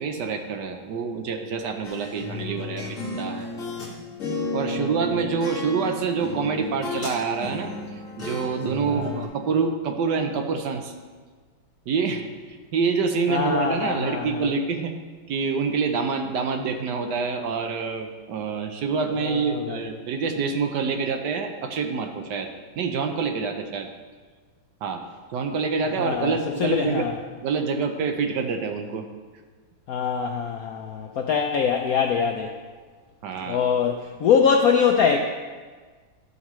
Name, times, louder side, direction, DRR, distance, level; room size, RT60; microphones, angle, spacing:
voice 1, 0.0-3.5 4.5-7.7 8.2-10.9 11.9-14.9 15.3-22.5 22.8-23.9 24.8-25.0 25.3-27.1 27.4-29.0 33.2-33.7, right 5 dB, 70° right, 5 dB, 1.2 m, -26 dB
sound 1, 1.8-3.9 4.2-7.1 7.4-9.2, left 2 dB, 40° left, 2.2 m, -33 dB
voice 2, 8.9-9.2 13.3-14.5 19.2-19.9 26.0-26.3 26.6-27.2 29.9-32.5 33.5-35.2, left 6 dB, 75° left, 3 dB, 0.8 m, -23 dB
12.5 x 8.0 x 3.1 m, 1.4 s
omnidirectional pair, 2.1 m